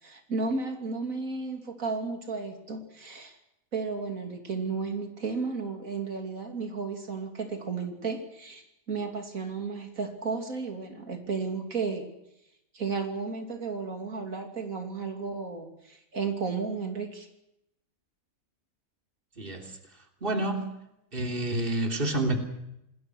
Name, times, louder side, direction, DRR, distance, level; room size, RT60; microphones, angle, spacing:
voice 1, 0.0-3.3 3.7-12.1 12.7-17.3, right 4 dB, 85° right, 5 dB, 3.4 m, -33 dB
voice 2, 19.4-19.7 20.2-20.8 21.1-22.4, right 2 dB, 40° right, 4 dB, 3.5 m, -28 dB
27.5 x 21.0 x 6.3 m, 0.83 s
omnidirectional pair, 1.4 m